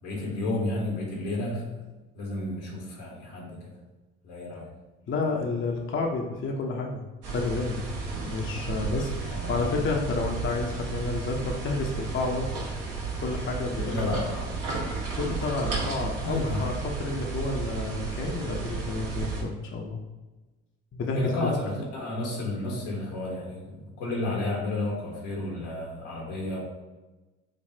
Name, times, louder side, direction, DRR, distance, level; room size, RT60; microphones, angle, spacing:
voice 1, 0.0-1.8 2.1-3.7 4.2-4.7 9.3-9.9 13.8-14.5 16.2-16.7 21.1-26.6, left 2 dB, 80° left, -2 dB, 1.2 m, -32 dB
voice 2, 5.1-7.0 7.3-7.8 8.2-12.5 13.2-13.9 15.1-20.0 20.9-21.2, left 3 dB, 35° left, 1 dB, 0.7 m, -30 dB
sound 1, 7.2-19.4, right 4 dB, 65° right, 1.2 m, -33 dB
5.2 x 2.4 x 2.8 m, 1.1 s
hypercardioid pair, 50°, 33 cm